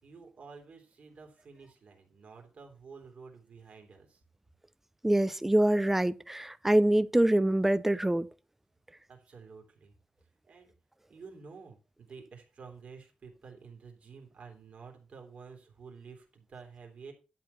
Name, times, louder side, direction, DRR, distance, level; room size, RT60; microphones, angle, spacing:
voice 1, 0.0-4.2 9.1-9.9 10.5-10.8 11.1-17.1, right 5 dB, 45° right, 3.4 m, -50 dB
voice 2, 5.0-8.3, right 1 dB, 10° right, 0.5 m, -25 dB
12.0 x 4.4 x 7.0 m
wide cardioid pair, 165°, 3 cm